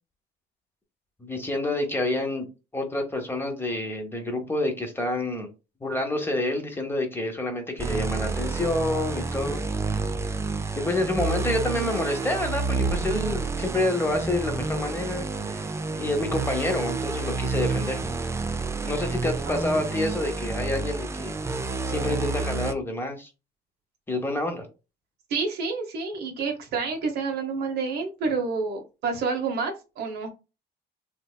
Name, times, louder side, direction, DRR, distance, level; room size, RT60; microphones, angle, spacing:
voice 1, 1.2-2.5 2.7-5.5 5.8-9.6 10.8-15.6 15.9-18.0 18.8-21.3 21.9-23.3 24.1-24.7, left 1 dB, 15° left, 4 dB, 0.9 m, -28 dB
sound 1, 7.8-22.7, right 3 dB, 15° right, 0.4 m, -29 dB
voice 2, 25.3-30.3, right 4 dB, 75° right, 4 dB, 1.0 m, -29 dB
3.3 x 2.9 x 2.3 m, 0.29 s
cardioid pair, 110°, 17 cm